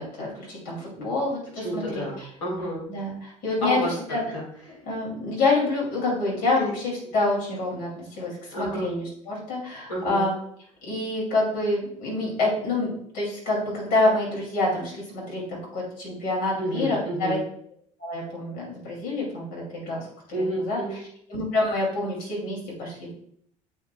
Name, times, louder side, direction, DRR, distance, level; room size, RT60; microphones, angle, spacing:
voice 1, 0.0-2.3 2.9-3.8 4.1-4.2 4.9-10.3 10.8-17.4 18.0-21.0 21.3-23.1, left 2 dB, 65° left, -3 dB, 2.7 m, -27 dB
voice 2, 1.6-2.8 3.6-3.9 4.3-4.8 6.6-6.7 8.5-9.0 9.9-10.3 16.6-17.4 20.3-21.0, equal, 85° left, -3 dB, 2.2 m, -30 dB
8.4 x 5.3 x 2.3 m, 0.65 s
hypercardioid pair, 60°, 17 cm